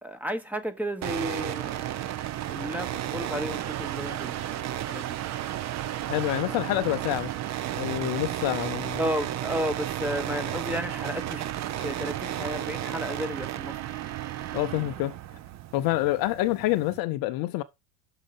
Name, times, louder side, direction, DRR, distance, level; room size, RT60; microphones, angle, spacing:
voice 1, 0.0-2.1 2.5-5.2 6.4-6.7 8.9-11.4 11.8-13.9, equal, 5° right, 1.0 m, -33 dB
sound 1, 1.0-17.0, right 12 dB, 40° right, 0.7 m, -33 dB
voice 2, 6.1-7.3 7.8-9.0 14.5-15.1 15.7-17.6, left 17 dB, 50° left, 0.7 m, -27 dB
6.4 x 5.0 x 5.5 m
hypercardioid pair, 95°, 44 cm